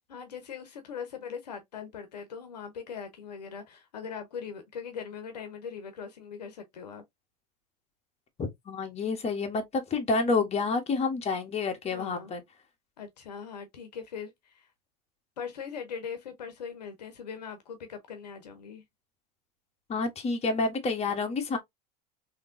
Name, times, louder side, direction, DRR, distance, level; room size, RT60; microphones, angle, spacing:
voice 1, 0.1-7.0 11.9-12.3 13.0-14.7 15.4-18.8, left 6 dB, 85° left, 0.9 m, -40 dB
voice 2, 8.4-12.4 19.9-21.6, left 4 dB, 30° left, 1.3 m, -29 dB
3.6 x 2.9 x 2.6 m
hypercardioid pair, 85°, 20 cm